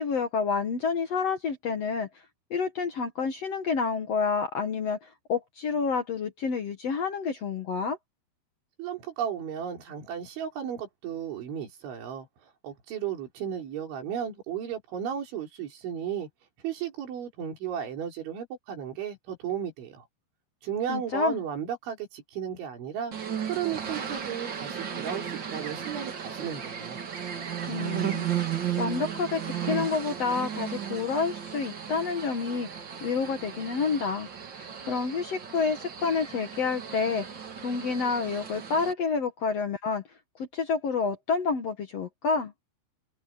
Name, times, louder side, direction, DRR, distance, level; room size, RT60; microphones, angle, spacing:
voice 1, 0.0-2.1 2.5-8.0 20.9-21.4 27.7-32.7 33.0-37.3 37.6-40.0 40.4-42.5, left 5 dB, 75° left, 1.4 m, -29 dB
voice 2, 8.8-12.3 12.6-16.3 16.6-20.1 20.6-23.1 23.5-27.0, right 8 dB, 85° right, 6.5 m, -34 dB
sound 1, 23.1-38.9, right 9 dB, 60° right, 1.1 m, -35 dB
open air
omnidirectional pair, 5.2 m